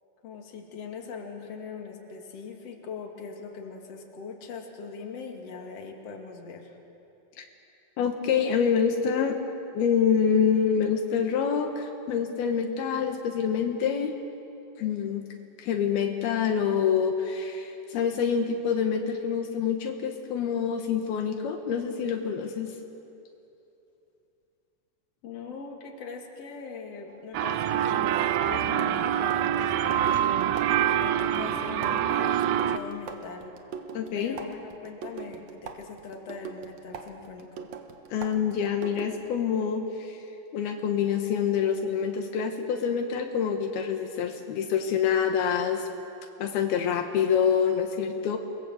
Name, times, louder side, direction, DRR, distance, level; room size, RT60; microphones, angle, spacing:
voice 1, 0.2-6.8 25.2-30.4 31.0-33.5 34.1-37.7, left 5 dB, 45° left, 1 dB, 3.1 m, -41 dB
voice 2, 8.0-9.4 9.7-14.1 14.8-15.2 15.6-22.7 33.9-34.4 38.1-40.2 40.5-45.9 46.4-48.4, left 7 dB, 75° left, 4 dB, 3.2 m, -26 dB
sound 1, 27.1-27.3 28.8-39.4, right 6 dB, 60° right, 2.0 m, -42 dB
sound 2, 27.3-32.8, right 10 dB, 80° right, 1.7 m, -25 dB
28.5 x 21.5 x 7.9 m, 2.8 s
omnidirectional pair, 4.5 m